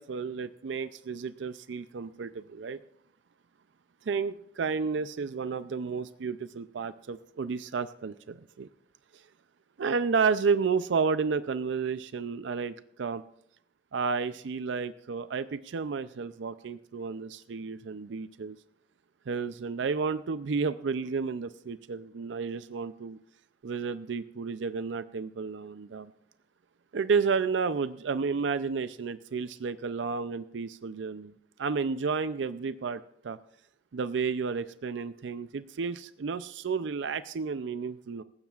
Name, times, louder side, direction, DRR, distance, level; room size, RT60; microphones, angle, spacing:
voice 1, 0.0-2.8 4.1-8.7 9.8-13.2 13.9-18.6 19.3-23.2 23.6-26.1 26.9-31.3 31.6-33.4 33.9-38.2, right 5 dB, 75° right, 13 dB, 0.4 m, -31 dB
19.0 x 15.0 x 2.4 m, 0.73 s
head